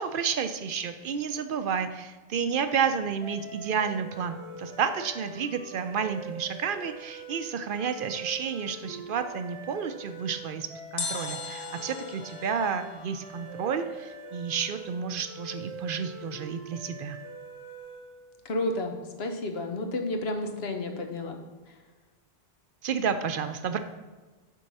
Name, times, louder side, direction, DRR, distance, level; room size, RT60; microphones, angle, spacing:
voice 1, 0.0-10.7 10.9-17.2 22.8-23.8, right 6 dB, 65° right, 9 dB, 0.7 m, -31 dB
sound 1, 3.2-18.3, right 3 dB, 90° right, 1.4 m, -44 dB
sound 2, 11.0-14.1 14.3-14.4, left 5 dB, 45° left, 0.6 m, -39 dB
voice 2, 18.4-21.4, left 2 dB, 75° left, 4 dB, 1.2 m, -31 dB
7.5 x 4.6 x 5.4 m, 1.2 s
omnidirectional pair, 1.0 m